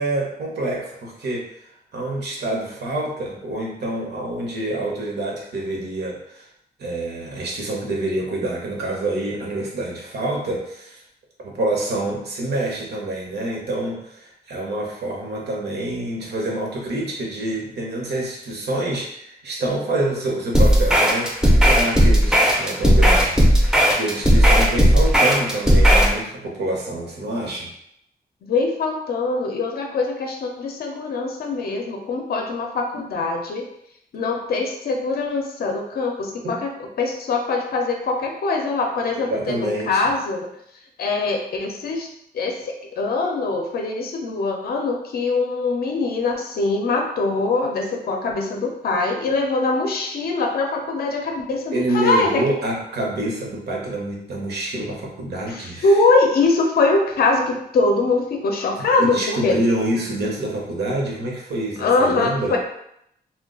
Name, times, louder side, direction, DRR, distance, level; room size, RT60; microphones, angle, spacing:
voice 1, 0.0-1.5 1.9-6.5 6.8-11.0 11.4-27.7 32.9-33.0 36.4-36.6 39.1-40.0 51.7-55.9 59.0-62.6, right 1 dB, 80° right, -2 dB, 0.8 m, -27 dB
sound 1, 20.5-26.2, equal, 5° right, 0.4 m, -15 dB
voice 2, 28.4-33.7 34.1-40.5 41.0-42.1 42.3-52.4 55.5-59.6 61.8-62.6, left 3 dB, 65° left, 2 dB, 0.4 m, -22 dB
2.3 x 2.1 x 3.6 m, 0.75 s
wide cardioid pair, 165°, 17 cm